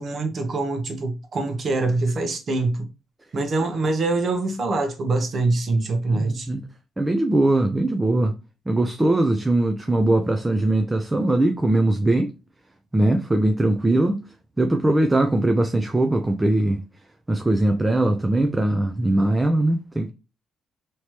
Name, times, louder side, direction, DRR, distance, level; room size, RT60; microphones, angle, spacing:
voice 1, 0.0-2.9 3.3-6.5, right 2 dB, 50° right, 0.9 m, -24 dB
voice 2, 6.1-6.6 7.0-8.4 8.7-12.3 12.9-14.2 14.6-16.8 17.3-20.1, right 1 dB, 15° right, 0.5 m, -21 dB
3.1 x 2.9 x 3.0 m
cardioid pair, 90°, 0 cm